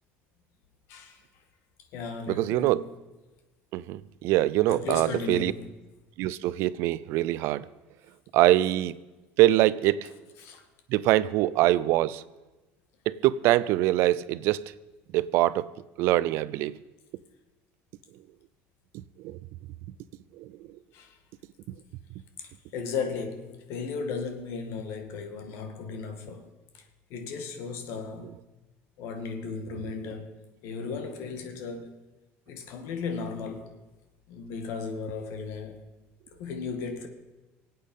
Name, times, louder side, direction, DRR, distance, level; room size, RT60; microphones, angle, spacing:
voice 1, 0.9-1.2 1.9-2.9 4.7-5.7 10.4-10.6 20.9-21.2 22.7-26.5 26.7-26.8 27.1-28.4 29.0-32.0 32.5-33.8 34.3-35.8 36.4-37.1, left 5 dB, 65° left, 2.0 m, -35 dB
voice 2, 2.3-2.8 3.7-5.5 6.2-7.7 8.3-9.0 9.4-10.1 10.9-12.2 13.1-14.6 15.1-15.7 16.0-16.7 18.9-19.4 20.4-20.5, right 15 dB, 65° right, 0.5 m, -24 dB
24.0 x 8.6 x 5.5 m
cardioid pair, 160°, 5 cm